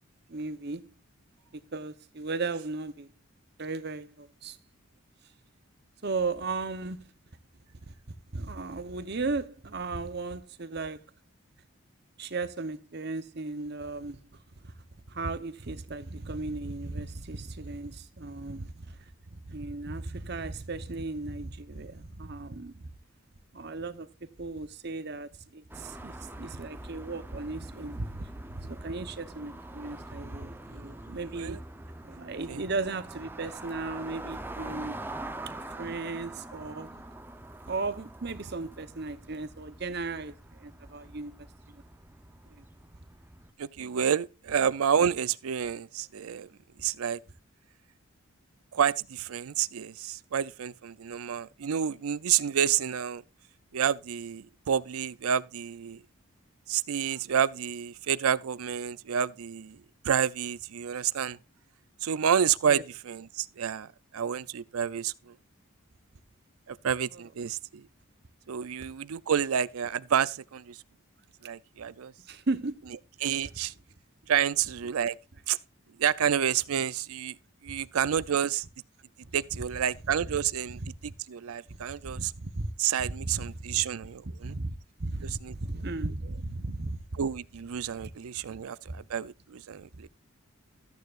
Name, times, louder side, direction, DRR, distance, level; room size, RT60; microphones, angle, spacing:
voice 1, 0.3-0.8 1.7-3.1 3.6-4.6 6.0-7.1 7.9-8.0 8.3-11.0 12.2-14.2 14.6-14.7 15.1-19.0 19.3-22.8 23.5-24.1 24.4-31.6 32.0-35.0 35.8-37.0 37.7-40.3 40.6-41.3 42.6-42.7 62.7-62.8 67.1-67.2 72.3-72.8 80.8-81.1 82.0-82.7 83.0-83.8 84.4-84.7 85.0-87.2 88.0-88.1 88.5-89.0, right 3 dB, 50° right, 0.8 m, -36 dB
sound 1, 25.7-43.5, right 1 dB, 10° right, 0.6 m, -44 dB
voice 2, 43.6-46.5 46.8-47.2 48.7-53.2 53.7-56.0 56.7-59.8 60.0-61.4 62.0-65.3 66.7-67.9 68.5-70.8 71.4-72.1 73.2-73.7 74.3-75.2 75.5-75.6 76.0-77.4 77.6-78.6 79.3-80.8 81.3-82.3 82.8-84.5 85.4-85.5 87.1-90.1, right 8 dB, 85° right, 0.5 m, -29 dB
13.5 x 9.2 x 2.5 m
head